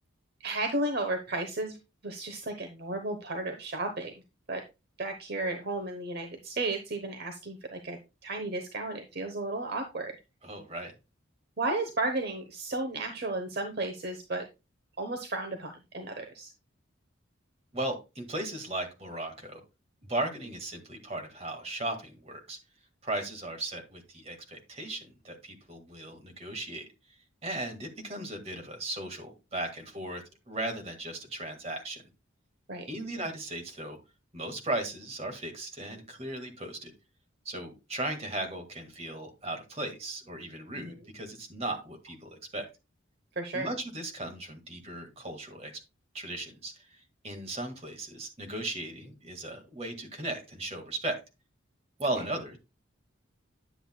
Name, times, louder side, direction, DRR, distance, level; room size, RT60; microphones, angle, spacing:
voice 1, 0.4-1.8 2.0-4.2 4.5-4.6 5.0-10.2 11.6-14.4 15.0-16.5 32.7-32.9 40.8-40.9 43.4-43.7, right 2 dB, 50° right, 5 dB, 1.0 m, -33 dB
voice 2, 10.4-10.9 17.7-19.6 20.0-22.6 23.0-26.9 27.4-32.0 32.9-34.0 34.3-36.9 37.5-42.7 43.5-45.7 46.1-51.2 52.0-52.6, right 1 dB, 30° right, 5 dB, 1.9 m, -37 dB
10.0 x 8.0 x 2.3 m, 0.26 s
head